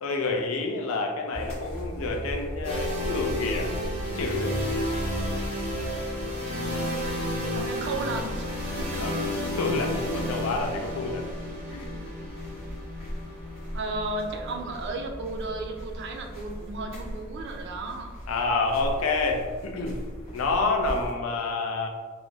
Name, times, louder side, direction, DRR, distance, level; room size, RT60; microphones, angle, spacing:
voice 1, 0.0-3.8 4.0-4.5 9.0-9.2 9.6-11.3 11.7-12.0 18.3-20.0 20.3-21.9, left 3 dB, 80° left, 3 dB, 0.4 m, -28 dB
sound 1, 1.3-21.1, equal, 15° right, 1.5 m, -38 dB
sound 2, 2.6-16.5, left 1 dB, 35° right, 1.0 m, -32 dB
voice 2, 7.5-8.5 8.8-9.1 13.7-18.1, right 2 dB, 55° right, 3 dB, 0.4 m, -34 dB
3.8 x 2.0 x 2.2 m, 1.5 s
head